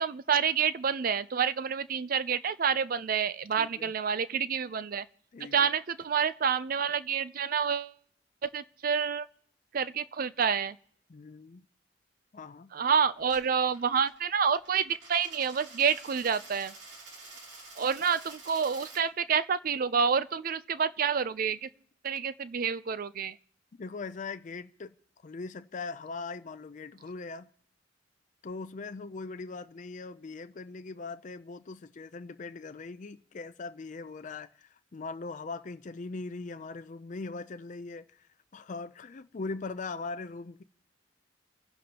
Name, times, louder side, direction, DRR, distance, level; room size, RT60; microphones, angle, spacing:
voice 1, 0.0-5.0 5.5-7.9 8.4-9.3 9.7-10.8 12.7-16.7 17.8-21.7 22.0-23.3, right 7 dB, 45° right, 0.4 m, -28 dB
voice 2, 3.6-3.9 5.3-5.7 11.1-11.7 12.3-12.7 23.8-24.9 25.2-27.5 28.4-40.6, left 3 dB, 40° left, 0.4 m, -40 dB
Coin (dropping), 13.2-19.0, right 3 dB, 65° right, 3.1 m, -49 dB
28.5 x 10.5 x 2.9 m
head